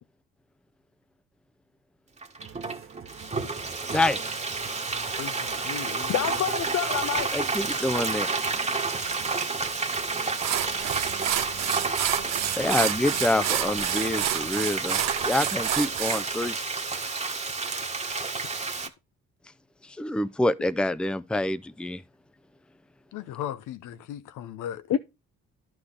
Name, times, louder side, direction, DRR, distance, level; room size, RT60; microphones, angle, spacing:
Frying (food), 2.2-18.9, right 4 dB, 20° right, 1.4 m, -30 dB
sound 1, 2.4-16.0, right 7 dB, 45° right, 1.1 m, -47 dB
voice 1, 5.2-6.4 23.1-24.9, left 10 dB, 85° left, 0.9 m, -37 dB
voice 2, 6.1-7.3 24.9-25.0, left 10 dB, 60° left, 0.7 m, -27 dB
voice 3, 7.3-8.3 12.6-16.6 19.8-22.0, left 1 dB, 5° left, 0.5 m, -27 dB
sound 2, 9.9-10.0 10.4-16.2, right 12 dB, 60° right, 0.6 m, -29 dB
11.5 x 6.2 x 3.4 m
cardioid pair, 90°, 30 cm